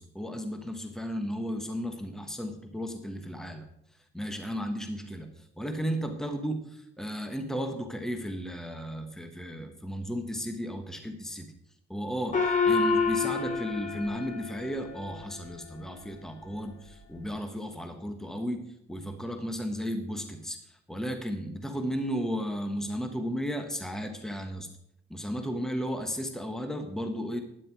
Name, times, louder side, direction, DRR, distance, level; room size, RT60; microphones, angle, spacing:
voice 1, 0.0-3.7 4.1-11.5 11.9-24.7 25.1-27.4, equal, ahead, 6 dB, 1.4 m, -34 dB
Gong, 12.3-15.2, left 4 dB, 40° left, 2.7 m, -28 dB
12.0 x 9.8 x 4.7 m, 0.74 s
cardioid pair, 90°, 20 cm